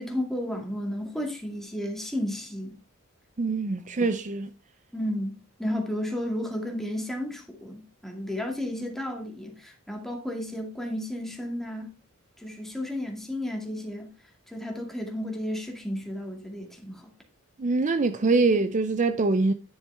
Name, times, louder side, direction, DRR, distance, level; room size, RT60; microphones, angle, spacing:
voice 1, 0.0-2.8 3.8-3.9 4.9-11.9 12.4-14.1 14.5-17.1, left 1 dB, ahead, 2.2 m, -33 dB
voice 2, 3.4-4.5 17.6-19.5, right 3 dB, 35° right, 0.5 m, -24 dB
10.5 x 6.5 x 3.3 m
head